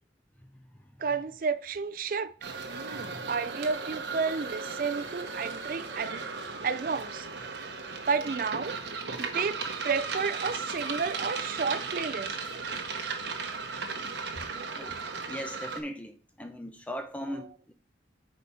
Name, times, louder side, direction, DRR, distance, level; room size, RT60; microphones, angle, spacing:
voice 1, 1.0-2.3 2.9-3.0 3.3-6.3 6.6-7.3 7.6-7.7 8.1-8.8 9.2-9.6 9.8-12.5 17.3-17.5, right 5 dB, 50° right, 0.4 m, -31 dB
sound 1, 2.4-15.8, right 4 dB, 80° right, 1.0 m, -36 dB
voice 2, 2.9-3.3 14.8-15.0 15.3-17.7, equal, 10° left, 0.7 m, -39 dB
4.9 x 4.2 x 5.6 m
head